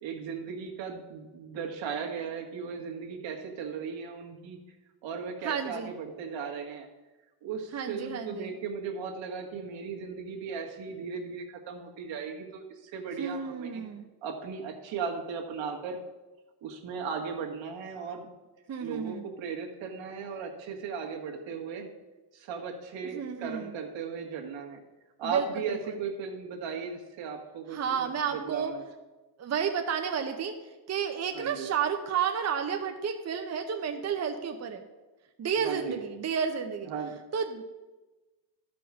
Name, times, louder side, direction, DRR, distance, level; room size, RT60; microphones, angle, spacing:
voice 1, 0.0-4.6 5.0-6.9 7.4-13.8 14.2-16.0 16.6-18.3 18.8-21.9 22.3-24.8 25.2-28.8 31.3-31.7 35.5-36.0 36.9-37.2, right 6 dB, 85° right, 1 dB, 1.7 m, -37 dB
voice 2, 5.4-5.9 7.7-8.5 13.2-14.1 18.7-19.2 23.1-23.7 25.2-26.0 27.7-28.7 29.4-30.6 30.9-34.9 35.4-36.9 37.3-37.6, right 7 dB, 35° right, 5 dB, 0.8 m, -31 dB
12.5 x 5.1 x 6.1 m, 1.2 s
cardioid pair, 130°, 44 cm